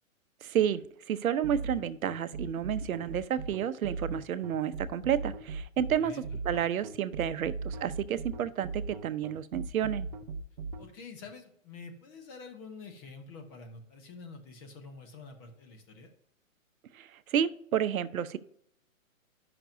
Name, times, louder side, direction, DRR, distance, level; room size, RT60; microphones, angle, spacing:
voice 1, 0.4-0.8 1.1-6.1 6.4-10.1 16.9-18.4, right 9 dB, 80° right, 14 dB, 0.7 m, -30 dB
sound 1, 1.4-10.8, right 4 dB, 35° right, 0.5 m, -38 dB
voice 2, 6.0-6.4 10.8-16.1, left 4 dB, 15° left, 4 dB, 0.7 m, -47 dB
10.0 x 5.9 x 2.5 m, 0.68 s
hypercardioid pair, 155°, 41 cm